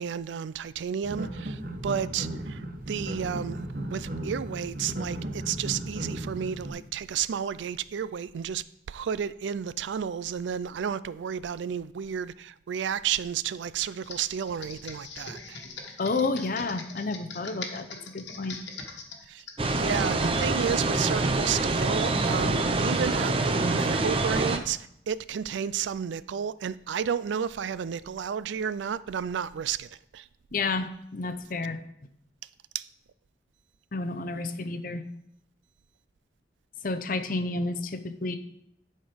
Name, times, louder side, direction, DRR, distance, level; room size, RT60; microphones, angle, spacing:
voice 1, 0.0-3.6 3.9-15.6 19.3-30.3 32.7-32.9, right 8 dB, 80° right, 0.3 m, -32 dB
sound 1, 1.0-6.7, right 1 dB, 50° right, 0.9 m, -35 dB
Computer keyboard, 14.0-20.1, left 4 dB, 70° left, 1.4 m, -42 dB
voice 2, 16.0-17.9 18.1-18.6 30.5-31.8 33.9-35.0 36.8-38.4, left 3 dB, 45° left, 0.6 m, -30 dB
sound 2, 19.6-24.6, right 2 dB, 30° right, 0.6 m, -26 dB
11.0 x 4.4 x 5.1 m
head